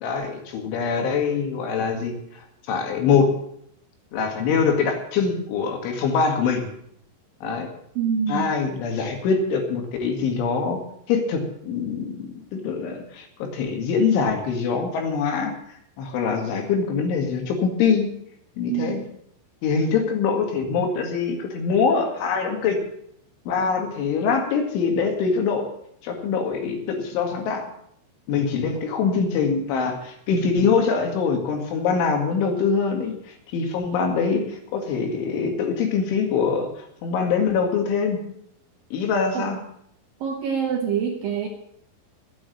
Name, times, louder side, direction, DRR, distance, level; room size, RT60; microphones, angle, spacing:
voice 1, 0.0-3.3 4.1-6.7 7.4-7.7 8.3-10.8 11.1-15.5 16.0-18.1 18.6-19.0 19.6-22.8 23.5-25.7 26.0-27.7 28.3-38.2 38.9-39.6, left 5 dB, 75° left, 3 dB, 4.4 m, -24 dB
voice 2, 8.0-8.5 18.7-19.0 39.3-39.5 40.2-41.5, right 7 dB, 65° right, 1 dB, 2.4 m, -25 dB
12.0 x 9.0 x 8.5 m, 0.70 s
omnidirectional pair, 5.6 m